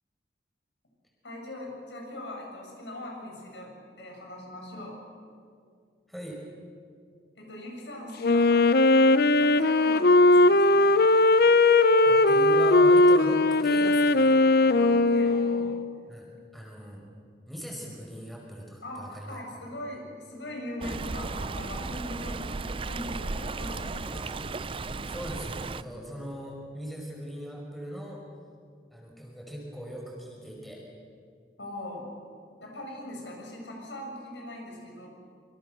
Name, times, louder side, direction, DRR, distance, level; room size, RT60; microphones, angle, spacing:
voice 1, 1.2-3.7 4.0-4.9 7.4-11.0 14.6-15.7 18.8-24.6 31.6-32.1 32.6-35.1, left 1 dB, 90° left, -1 dB, 7.6 m, -40 dB
voice 2, 6.1-6.4 12.1-14.4 16.1-17.0 17.5-19.4 25.1-28.2 28.9-30.8, equal, ahead, -1 dB, 5.4 m, -39 dB
Wind instrument woodwind instrument, 8.2-15.9, left 2 dB, 60° left, 0.7 m, -19 dB
Stream, 20.8-25.8, right 3 dB, 30° right, 0.5 m, -35 dB
27.0 x 24.5 x 6.9 m, 2.3 s
head